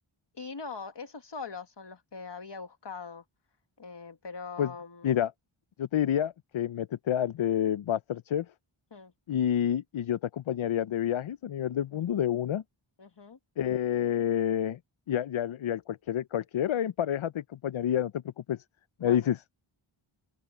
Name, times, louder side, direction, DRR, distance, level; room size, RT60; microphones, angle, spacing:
voice 1, 0.3-3.2 3.8-5.1 8.9-9.1 13.0-13.4 19.0-19.3, left 4 dB, 55° left, 1.4 m, -42 dB
voice 2, 5.8-8.5 9.3-12.6 13.6-14.8 15.1-18.1 18.5-18.6 19.0-19.4, left 10 dB, 75° left, 0.6 m, -28 dB
open air
wide cardioid pair, 40°, 49 cm